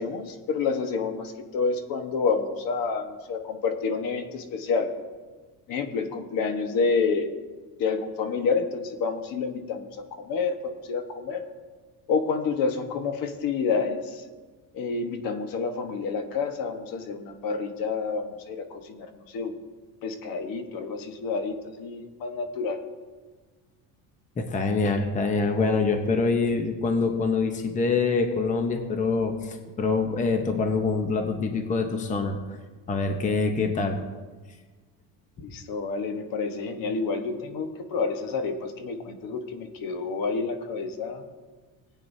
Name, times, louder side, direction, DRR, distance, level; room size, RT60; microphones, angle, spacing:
voice 1, 0.0-4.9 5.7-7.3 7.8-11.5 12.1-14.2 14.7-19.6 20.0-22.8 35.4-41.2, left 4 dB, 60° left, 6 dB, 1.3 m, -29 dB
voice 2, 24.4-32.4 32.9-34.0, left 4 dB, 20° left, 5 dB, 0.8 m, -25 dB
19.0 x 8.9 x 2.7 m, 1.4 s
cardioid pair, 150°, 39 cm